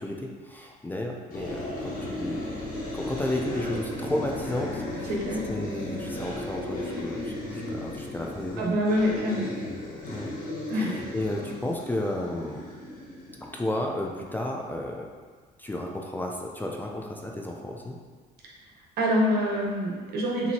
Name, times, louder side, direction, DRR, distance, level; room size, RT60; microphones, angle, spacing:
voice 1, 0.0-2.4 2.9-5.2 5.5-8.7 10.1-10.3 10.7-12.6 13.4-15.1 15.6-18.0, left 1 dB, 10° left, 0 dB, 0.4 m, -33 dB
sound 1, 1.3-14.2, left 1 dB, 55° left, 1.3 m, -35 dB
voice 2, 5.1-5.4 8.6-9.5 10.7-10.9 19.0-20.5, equal, 70° right, -2 dB, 1.0 m, -25 dB
5.9 x 2.6 x 2.8 m, 1.5 s
cardioid pair, 110°, 17 cm